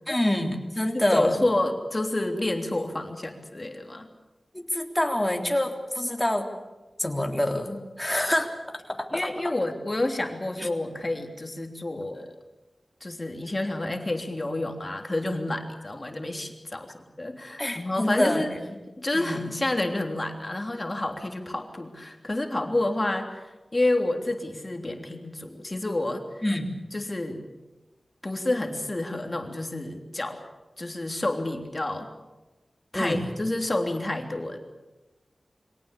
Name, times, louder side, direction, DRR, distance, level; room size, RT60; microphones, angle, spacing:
voice 1, 0.1-1.4 4.5-6.5 7.0-8.5 8.9-9.3 10.6-10.7 17.6-18.6 19.1-19.6 26.4-26.7 32.9-33.3, left 1 dB, 15° left, 3 dB, 3.5 m, -26 dB
voice 2, 0.9-4.1 9.1-12.4 13.0-18.5 19.0-26.2 26.9-27.4 28.2-30.4 30.8-32.1 32.9-34.6, left 2 dB, 35° left, 4 dB, 3.3 m, -29 dB
24.5 x 18.0 x 8.5 m, 1.1 s
cardioid pair, 50°, 0 cm